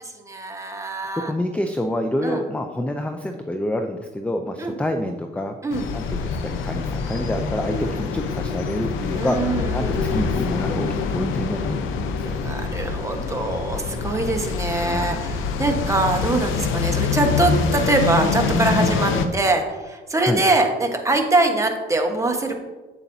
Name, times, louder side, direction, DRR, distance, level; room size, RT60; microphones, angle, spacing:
voice 1, 0.0-1.3 2.2-2.4 4.6-4.7 5.6-5.9 7.7-7.9 9.1-10.2 12.2-22.6, right 2 dB, 15° right, 3 dB, 1.2 m, -23 dB
voice 2, 1.2-5.6 5.9-12.4 14.7-15.4 20.2-20.4, left 1 dB, 5° left, 6 dB, 0.4 m, -28 dB
sound 1, 5.7-19.3, left 4 dB, 85° left, 0.6 m, -25 dB
8.2 x 7.1 x 2.7 m, 1.2 s
cardioid pair, 90°, 20 cm